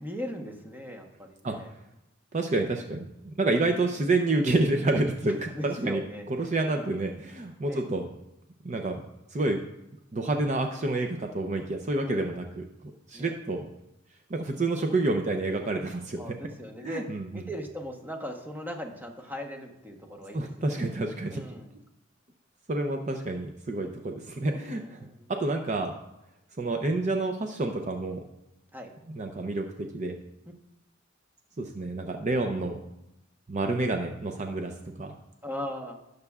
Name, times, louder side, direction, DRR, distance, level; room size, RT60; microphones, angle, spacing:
voice 1, 0.0-1.7 5.5-6.2 6.7-7.0 7.6-7.8 12.1-12.2 13.1-13.3 16.2-17.0 17.3-20.8 21.3-21.7 24.5-25.3 28.7-28.9 35.4-36.0, equal, 10° right, 2 dB, 1.0 m, -39 dB
voice 2, 2.3-6.0 6.3-8.1 8.6-9.6 10.1-13.7 14.3-16.2 16.8-17.4 20.3-21.4 22.7-25.0 25.3-25.9 26.6-28.2 29.1-30.1 31.6-32.8 33.5-34.7 35.0-35.1, right 2 dB, 40° right, 4 dB, 0.6 m, -29 dB
18.0 x 6.6 x 2.4 m, 0.88 s
head